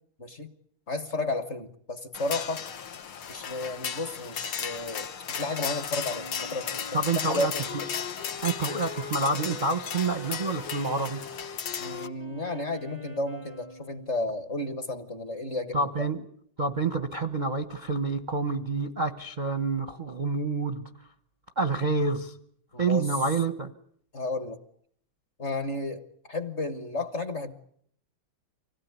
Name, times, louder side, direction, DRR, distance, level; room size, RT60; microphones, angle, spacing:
voice 1, 0.2-0.5 0.9-2.6 3.3-6.8 7.2-7.7 11.8-16.1 22.7-23.1 24.1-24.6 25.4-26.0 26.3-27.5, left 2 dB, 35° left, 10 dB, 1.4 m, -32 dB
sound 1, 2.1-12.1, left 7 dB, 75° left, 2.1 m, -35 dB
Wind instrument woodwind instrument, 6.1-14.2, left 4 dB, 15° left, 0.5 m, -44 dB
voice 2, 6.9-7.8 8.4-11.2 15.7-16.2 16.6-20.9 21.6-22.3 22.8-23.7, right 3 dB, 35° right, 8 dB, 0.7 m, -28 dB
25.5 x 17.0 x 9.4 m, 0.66 s
omnidirectional pair, 2.3 m